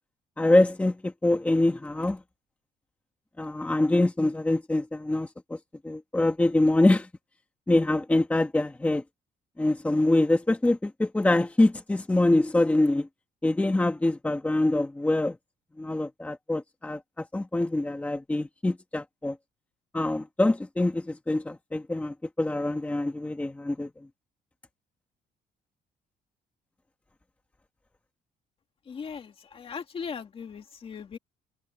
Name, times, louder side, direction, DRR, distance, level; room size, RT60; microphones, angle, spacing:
voice 1, 0.4-2.2 3.4-5.6 5.8-7.1 7.7-9.0 9.6-13.1 13.4-15.4 15.8-19.4 19.9-23.9, left 2 dB, 10° left, 1.2 m, -24 dB
voice 2, 28.9-31.2, left 6 dB, 35° left, 2.2 m, -38 dB
cardioid pair, 170°, 17 cm